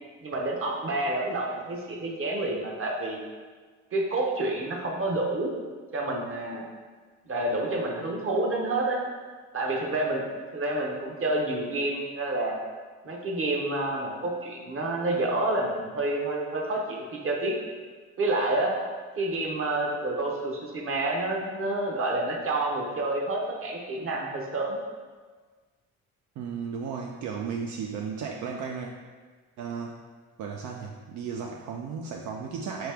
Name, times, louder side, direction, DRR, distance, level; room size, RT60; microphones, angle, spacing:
voice 1, 0.2-3.2 3.9-5.6 5.9-6.7 7.3-9.0 9.5-10.2 10.5-12.6 13.0-17.5 18.2-18.8 19.2-24.8, right 2 dB, 45° right, -1 dB, 1.0 m, -28 dB
voice 2, 26.4-28.9 29.6-30.0 30.4-32.9, right 6 dB, 75° right, 0 dB, 0.4 m, -34 dB
4.8 x 3.0 x 3.4 m, 1.4 s
cardioid pair, 90°, 30 cm